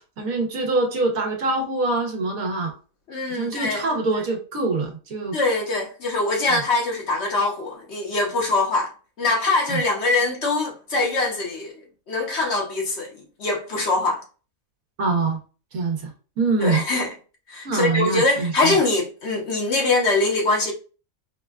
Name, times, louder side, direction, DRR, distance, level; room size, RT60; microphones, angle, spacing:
voice 1, 0.0-2.7 3.3-5.3 6.5-6.6 9.7-9.8 15.0-15.4 15.7-16.1 16.4-16.8 17.6-18.8, right 3 dB, 75° right, 1.3 m, -24 dB
voice 2, 3.1-3.8 5.3-8.9 9.2-11.7 12.1-14.2 16.6-17.1 17.5-20.7, left 2 dB, 55° left, 1.0 m, -23 dB
5.0 x 2.1 x 2.3 m
omnidirectional pair, 1.5 m